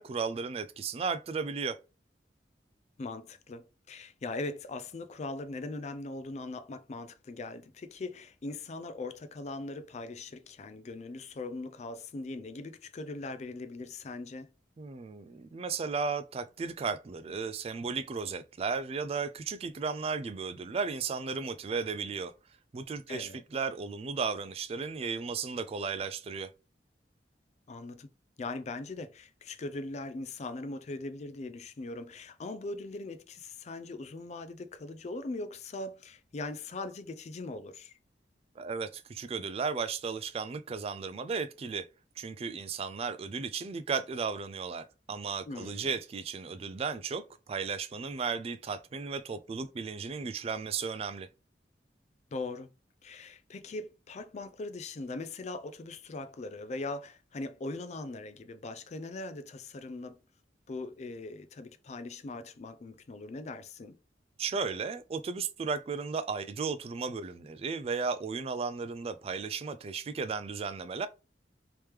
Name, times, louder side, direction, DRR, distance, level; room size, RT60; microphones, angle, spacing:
voice 1, 0.0-1.8 14.8-22.3 22.7-26.5 38.6-41.9 42.2-51.3 64.4-71.1, right 5 dB, 35° right, 0.3 m, -35 dB
voice 2, 3.0-14.5 23.1-23.4 27.7-28.1 28.4-37.9 45.5-45.9 52.3-52.7 53.0-60.2 60.7-64.0, left 2 dB, 40° left, 0.4 m, -40 dB
3.3 x 2.9 x 3.2 m
head